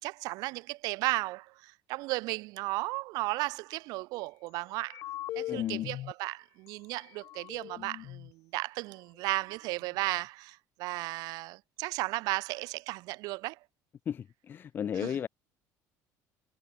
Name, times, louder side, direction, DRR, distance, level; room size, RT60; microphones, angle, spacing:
voice 1, 0.0-5.1 5.3-13.6 15.0-15.1, right 22 dB, 75° right, 2.9 m, -35 dB
sound 1, 4.8-6.1 6.7-6.8 7.0-8.3, left 14 dB, 50° left, 1.9 m, -38 dB
voice 2, 5.5-5.9 14.0-15.3, left 8 dB, 30° left, 1.4 m, -35 dB
cardioid pair, 165°, 7 cm